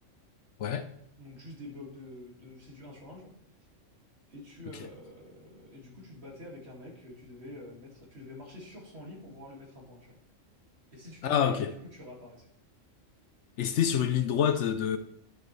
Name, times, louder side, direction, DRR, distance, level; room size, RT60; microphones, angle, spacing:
voice 1, 1.2-3.3 4.3-10.2 10.9-12.5, left 1 dB, 55° right, 2.6 m, -47 dB
voice 2, 11.2-11.7 13.6-15.0, left 9 dB, 70° left, 0.9 m, -26 dB
10.5 x 6.7 x 3.3 m
omnidirectional pair, 1.3 m